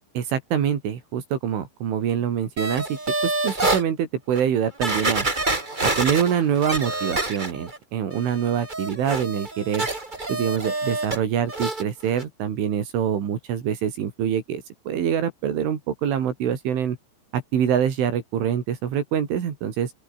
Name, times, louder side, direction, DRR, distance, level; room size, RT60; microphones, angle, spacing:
voice 1, 0.2-5.3 6.0-9.9 10.3-17.0 17.3-19.9, right 8 dB, 80° right, 5.8 m, -25 dB
sound 1, 2.6-3.8 4.4-4.5 4.8-7.8 8.1-11.2 11.5-11.8 12.2-12.3, right 2 dB, 15° right, 1.8 m, -27 dB
open air
omnidirectional pair, 5.5 m